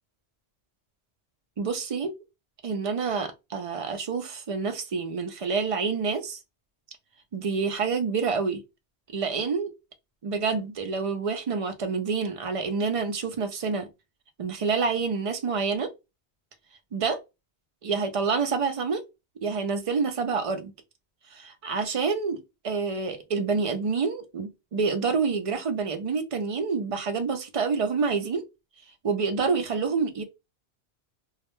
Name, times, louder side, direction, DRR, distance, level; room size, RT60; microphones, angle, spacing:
voice 1, 1.6-2.1 2.6-6.4 7.3-8.6 9.1-9.7 10.2-13.9 14.4-15.9 16.9-17.2 17.8-19.0 19.4-20.7 21.3-28.5 29.0-30.2, right 5 dB, 60° right, 0.3 m, -27 dB
2.3 x 2.1 x 2.9 m
omnidirectional pair, 1.2 m